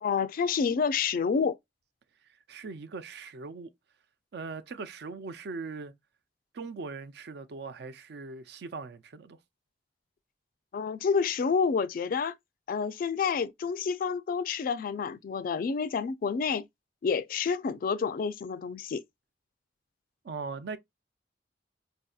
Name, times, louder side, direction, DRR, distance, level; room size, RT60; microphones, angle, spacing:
voice 1, 0.0-1.6 10.7-12.3 12.7-16.6 17.0-19.0, left 5 dB, 55° left, 0.3 m, -29 dB
voice 2, 2.5-3.7 4.3-5.9 6.5-9.4 20.2-20.8, right 4 dB, 65° right, 0.4 m, -40 dB
4.2 x 2.7 x 2.3 m
head